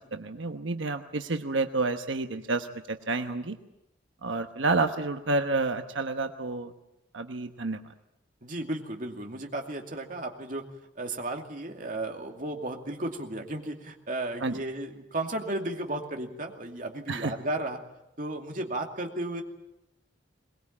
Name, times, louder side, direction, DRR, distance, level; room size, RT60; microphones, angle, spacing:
voice 1, 0.1-3.6 4.2-6.7 7.1-7.8 14.4-14.6 17.1-17.3, right 3 dB, 90° right, 7 dB, 1.1 m, -29 dB
voice 2, 8.4-10.6 11.0-17.8 18.2-19.4, right 1 dB, 45° right, 3 dB, 2.5 m, -34 dB
22.0 x 21.0 x 8.7 m, 0.89 s
head